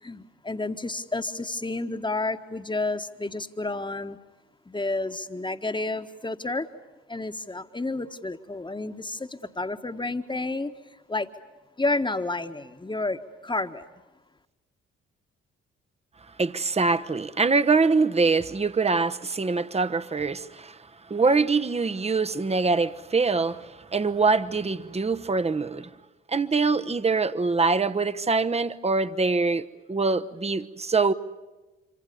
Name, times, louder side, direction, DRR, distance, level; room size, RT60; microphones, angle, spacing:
voice 1, 0.0-4.2 4.6-6.7 7.1-10.7 11.1-11.3 11.8-13.8, left 2 dB, 15° left, 1.5 m, -30 dB
voice 2, 16.4-20.8 21.1-25.9 26.3-31.1, right 4 dB, 20° right, 1.1 m, -24 dB
26.5 x 25.0 x 7.0 m
figure-of-eight pair, 40°, 34 cm